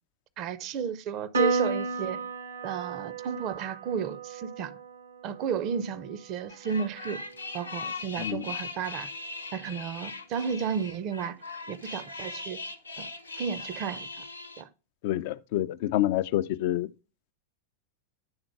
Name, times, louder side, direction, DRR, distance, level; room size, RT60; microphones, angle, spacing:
voice 1, 0.4-2.2 2.6-4.8 5.2-7.2 7.5-9.1 9.5-11.4 11.7-12.6 13.0-13.1 13.4-14.2 14.6-14.7, right 7 dB, 40° right, 0.7 m, -33 dB
Piano, 1.3-8.0, right 4 dB, 70° right, 0.9 m, -34 dB
sound 1, 6.5-14.6, left 3 dB, 80° left, 0.8 m, -39 dB
voice 2, 15.0-16.9, left 13 dB, 50° left, 0.4 m, -27 dB
8.9 x 3.8 x 4.6 m
figure-of-eight pair, 90°, 0 cm